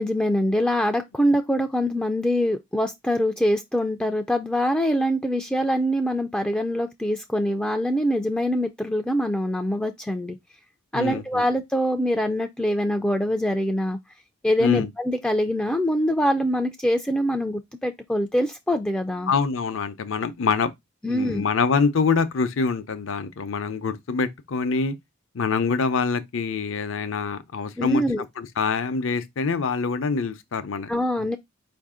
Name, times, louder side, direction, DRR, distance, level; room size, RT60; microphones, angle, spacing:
voice 1, 0.0-10.4 10.9-14.0 14.4-19.3 21.0-21.4 27.8-28.2 30.9-31.4, equal, 5° left, 0.3 m, -24 dB
voice 2, 10.9-11.4 14.6-14.9 19.3-20.7 21.1-24.9 25.3-30.9 31.2-31.3, left 5 dB, 65° left, 0.6 m, -25 dB
4.8 x 2.6 x 3.6 m
head